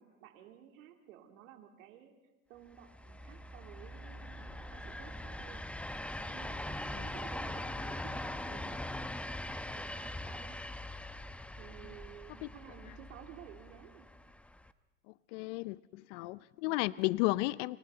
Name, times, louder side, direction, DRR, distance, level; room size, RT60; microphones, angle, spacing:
voice 1, 0.0-2.1 2.5-5.6 6.2-8.9 9.7-10.6 11.6-14.1 16.9-17.2, right 10 dB, 75° right, 2 dB, 3.3 m, -54 dB
sound 1, 2.8-14.7, left 1 dB, 5° left, 0.8 m, -42 dB
voice 2, 15.3-17.8, left 21 dB, 60° left, 18 dB, 0.6 m, -33 dB
29.5 x 27.0 x 4.0 m, 1.1 s
hypercardioid pair, 100°, 40 cm